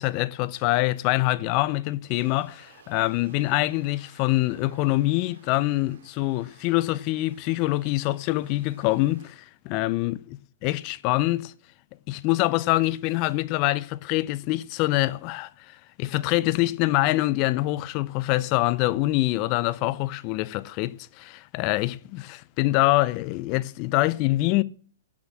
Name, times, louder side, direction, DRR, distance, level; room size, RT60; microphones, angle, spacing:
voice 1, 0.0-10.2 10.6-11.5 12.1-24.6, left 18 dB, 35° left, 0.6 m, -25 dB
sound 1, 2.1-9.3, right 6 dB, 65° right, 2.6 m, -56 dB
15.0 x 6.1 x 7.2 m
hypercardioid pair, 140°, 0 cm